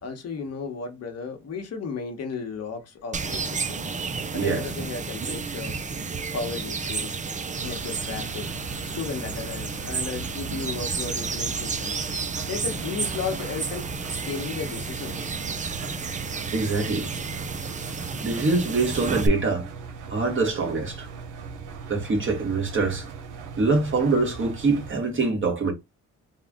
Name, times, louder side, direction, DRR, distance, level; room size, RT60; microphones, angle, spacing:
voice 1, 0.0-3.8 4.3-5.8 6.3-7.2 7.6-8.5 8.9-12.0 12.5-15.4, left 5 dB, 55° left, 1.1 m, -34 dB
sound 1, 3.1-19.3, right 4 dB, 25° right, 0.5 m, -31 dB
voice 2, 4.3-4.7 16.5-17.1 18.2-19.7 20.1-21.1 21.9-23.1 23.6-25.7, right 3 dB, 40° right, 1.6 m, -24 dB
Engine, 7.5-24.9, right 4 dB, 80° right, 1.0 m, -39 dB
3.6 x 2.4 x 3.6 m
cardioid pair, 90°, 30 cm